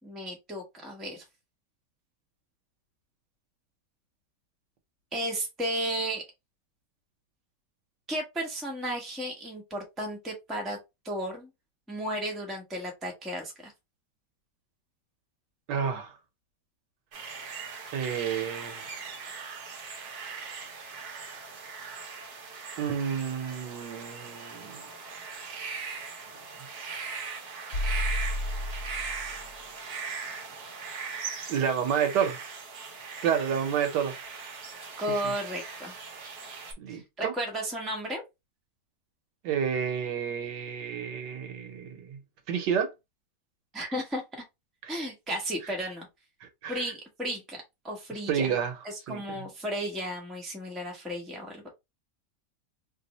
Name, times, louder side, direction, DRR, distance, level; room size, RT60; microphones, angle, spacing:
voice 1, 0.0-1.2 5.1-6.2 8.1-10.8 11.0-11.5 11.9-13.7 35.0-36.0 36.9-38.2 43.7-44.2 44.9-46.1 46.7-48.5 48.8-51.7, equal, ahead, 0.5 m, -34 dB
voice 2, 15.7-16.1 17.9-19.0 20.2-20.6 22.8-24.8 31.5-32.4 33.2-34.1 35.1-35.3 36.8-37.3 39.4-42.2 42.5-42.9 44.8-45.0 46.4-46.8 48.3-48.7 49.1-49.2, right 7 dB, 85° right, 1.5 m, -30 dB
sound 1, 17.1-36.7, right 5 dB, 70° right, 1.4 m, -40 dB
sound 2, 27.7-29.6, left 1 dB, 55° left, 0.8 m, -31 dB
3.3 x 2.0 x 3.9 m
omnidirectional pair, 1.8 m